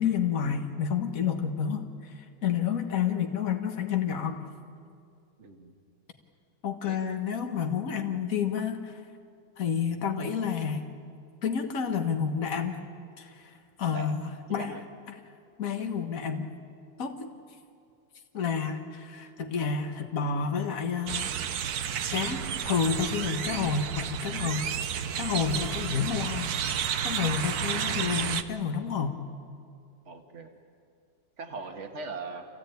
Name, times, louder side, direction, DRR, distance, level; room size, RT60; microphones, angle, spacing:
voice 1, 0.0-2.1 2.4-4.5 6.6-9.0 9.6-10.8 11.4-12.8 13.2-13.5 13.8-14.7 15.1-15.2 15.6-16.5 17.0-17.3 18.3-21.4 22.1-24.7 25.2-29.1, left 7 dB, 60° left, 5 dB, 1.8 m, -30 dB
voice 2, 5.4-5.7 6.9-7.0 13.9-14.1 14.6-14.8 30.1-30.5 31.4-32.4, right 4 dB, 50° right, 4 dB, 1.9 m, -39 dB
sound 1, 21.1-28.4, right 8 dB, 75° right, 1.4 m, -31 dB
27.0 x 16.0 x 9.2 m, 2.3 s
omnidirectional pair, 1.7 m